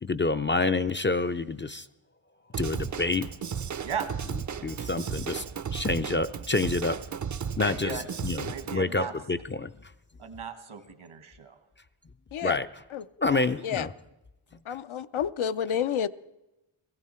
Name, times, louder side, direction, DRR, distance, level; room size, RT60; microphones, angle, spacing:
voice 1, 0.0-1.9 2.6-3.3 4.6-5.4 5.7-7.0 7.6-8.5 8.7-9.7 12.4-12.7 13.2-13.9, left 3 dB, 25° left, 10 dB, 0.4 m, -27 dB
Drum kit / Drum, 2.5-8.8, right 7 dB, 40° right, 0.5 m, -34 dB
voice 2, 7.5-8.0 8.4-9.1 10.2-11.6 13.2-13.5, right 7 dB, 75° right, 9 dB, 1.5 m, -37 dB
voice 3, 14.7-16.1, left 8 dB, 75° left, 13 dB, 0.6 m, -29 dB
16.5 x 15.0 x 4.3 m, 0.97 s
cardioid pair, 60°, 49 cm